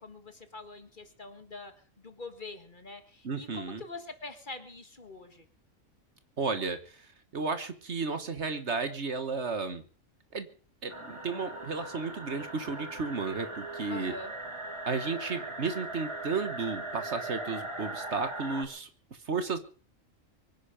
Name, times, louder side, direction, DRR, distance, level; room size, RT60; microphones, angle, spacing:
voice 1, 0.0-1.7 2.0-5.5 13.9-14.3, left 3 dB, 35° left, 8 dB, 1.8 m, -44 dB
voice 2, 3.2-3.8 6.4-9.8 10.3-10.5 10.8-14.1 14.9-18.9 19.2-19.6, right 4 dB, 55° right, 9 dB, 1.6 m, -33 dB
sound 1, 10.9-18.6, right 2 dB, 20° right, 1.9 m, -39 dB
23.5 x 10.0 x 5.1 m, 0.43 s
omnidirectional pair, 1.4 m